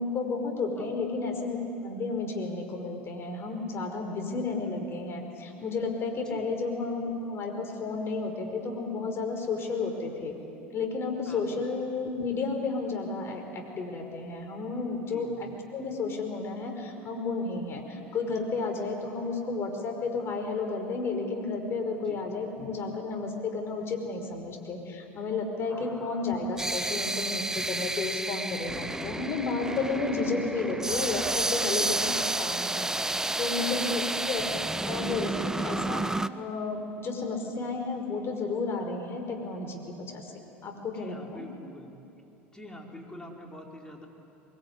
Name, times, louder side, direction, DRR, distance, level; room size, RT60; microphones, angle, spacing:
voice 1, 0.0-10.3 10.7-36.0 36.4-40.2 40.6-41.4, left 3 dB, 40° left, 3 dB, 5.2 m, -32 dB
sound 1, 25.7-36.3, right 2 dB, 10° right, 0.7 m, -31 dB
voice 2, 33.6-34.0 40.9-41.9 42.5-44.1, left 1 dB, 10° left, 0 dB, 4.8 m, -46 dB
23.0 x 22.0 x 9.8 m, 2.8 s
hypercardioid pair, 75°, 7 cm